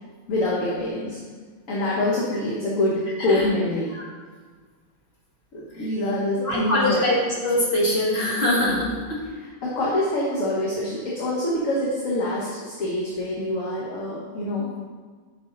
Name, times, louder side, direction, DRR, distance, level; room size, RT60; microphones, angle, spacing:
voice 1, 0.3-1.2 1.7-4.0 5.5-7.0 9.6-14.9, left 1 dB, 65° left, -5 dB, 1.6 m, -25 dB
voice 2, 6.4-9.2, left 1 dB, 45° left, -4 dB, 2.1 m, -23 dB
8.0 x 6.7 x 4.0 m, 1.5 s
omnidirectional pair, 1.5 m